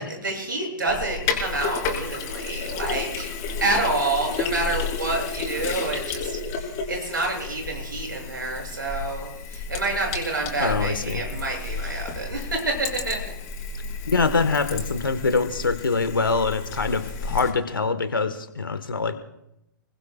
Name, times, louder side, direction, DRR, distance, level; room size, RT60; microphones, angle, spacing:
voice 1, 0.0-13.3, right 2 dB, 70° right, 1 dB, 7.5 m, -28 dB
Sink (filling or washing), 0.9-17.5, left 4 dB, 30° left, 4.3 m, -32 dB
voice 2, 10.6-11.2 14.1-19.2, left 4 dB, 75° left, 10 dB, 1.5 m, -24 dB
29.5 x 20.0 x 2.4 m, 0.84 s
figure-of-eight pair, 115°, 11 cm